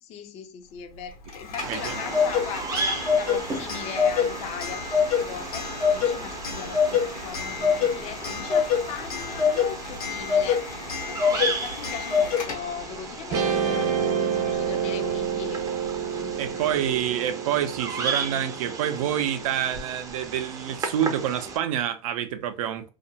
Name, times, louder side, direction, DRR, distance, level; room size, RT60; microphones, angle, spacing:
voice 1, 0.0-5.7 5.9-10.7 11.1-15.7 16.1-16.7, left 8 dB, 35° left, 0.4 m, -39 dB
Clock, 1.3-12.9, left 6 dB, 85° left, 1.0 m, -26 dB
Bird vocalization bird call bird song, 1.6-21.6, right 4 dB, 20° right, 0.5 m, -35 dB
voice 2, 1.7-2.0 16.4-22.9, right 10 dB, 70° right, 0.5 m, -27 dB
Guitar, 13.3-19.8, right 7 dB, 40° right, 0.8 m, -29 dB
2.4 x 2.1 x 2.7 m
hypercardioid pair, 110°, 18 cm